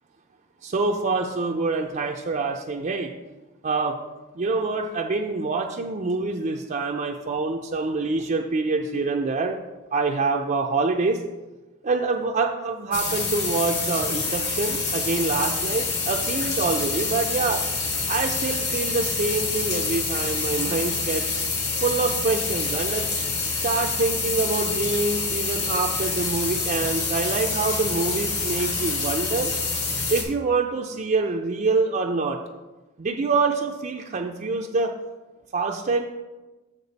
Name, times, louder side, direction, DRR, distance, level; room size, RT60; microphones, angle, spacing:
voice 1, 0.6-3.1 3.6-4.0 4.4-9.6 9.9-11.2 11.8-17.6 18.1-21.3 21.8-23.1 23.6-29.5 30.1-32.4 33.0-34.9 35.5-36.1, right 3 dB, 40° right, 1 dB, 0.4 m, -25 dB
sound 1, 12.9-30.2, left 4 dB, 55° left, 1.9 m, -27 dB
7.2 x 6.7 x 4.0 m, 1.2 s
head